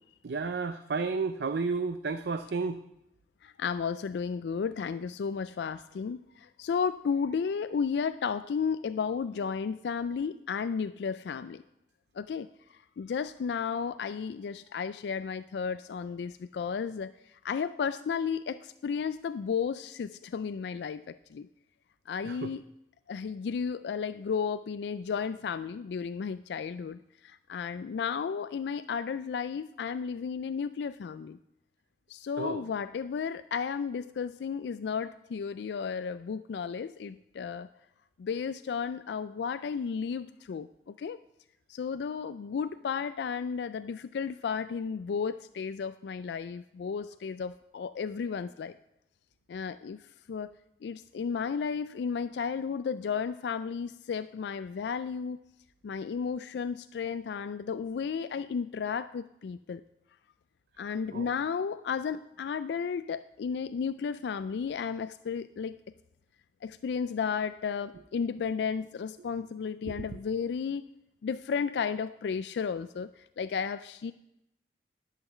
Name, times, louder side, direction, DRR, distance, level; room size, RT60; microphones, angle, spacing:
voice 1, 0.2-2.8 22.2-22.5 32.4-32.7 61.1-61.3 69.9-70.1, right 4 dB, 75° right, 10 dB, 0.5 m, -32 dB
voice 2, 3.4-11.6 12.2-12.5 13.0-17.1 17.4-21.5 22.1-22.6 23.1-31.4 32.1-37.7 38.2-41.2 41.7-48.7 49.5-50.0 50.3-50.5 50.8-55.4 55.8-59.8 60.8-65.8 66.6-70.8 71.2-73.1 73.4-74.1, left 6 dB, 75° left, 13 dB, 0.3 m, -33 dB
11.0 x 5.7 x 7.2 m, 0.83 s
head